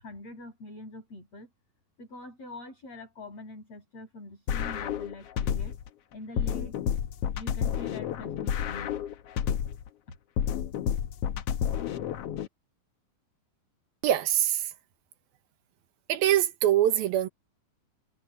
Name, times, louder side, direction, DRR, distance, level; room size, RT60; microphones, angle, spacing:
voice 1, 0.0-1.5 2.0-5.7 6.1-6.7 7.4-9.0, left 2 dB, 45° left, 7.6 m, -44 dB
sound 1, 4.5-5.9 6.4-9.9 10.4-12.5, left 9 dB, 75° left, 1.4 m, -30 dB
voice 2, 14.0-14.7 16.1-17.3, right 12 dB, 85° right, 3.2 m, -23 dB
omnidirectional pair, 4.2 m